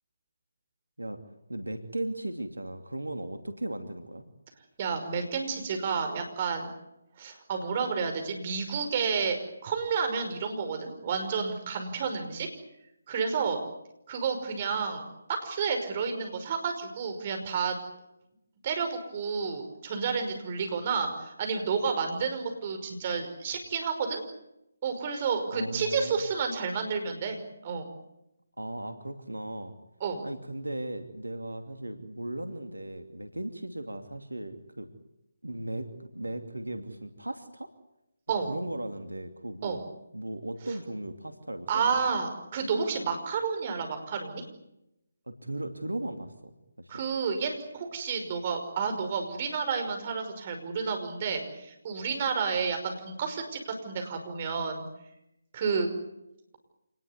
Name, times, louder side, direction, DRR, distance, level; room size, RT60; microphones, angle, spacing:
voice 1, 1.5-4.3 25.5-26.2 28.6-29.7 30.2-34.9 35.4-37.7 38.4-39.8 40.1-41.9 45.3-46.9, right 1 dB, 90° right, 7 dB, 2.7 m, -37 dB
voice 2, 4.8-6.7 7.2-12.5 13.1-13.6 14.1-15.0 15.3-17.8 18.6-24.2 24.8-27.9 30.0-30.2 38.3-38.5 39.6-39.8 41.7-44.4 46.9-54.9 55.5-55.9, right 5 dB, 35° right, 5 dB, 5.5 m, -30 dB
27.0 x 20.0 x 9.6 m, 0.88 s
figure-of-eight pair, 150°, 0 cm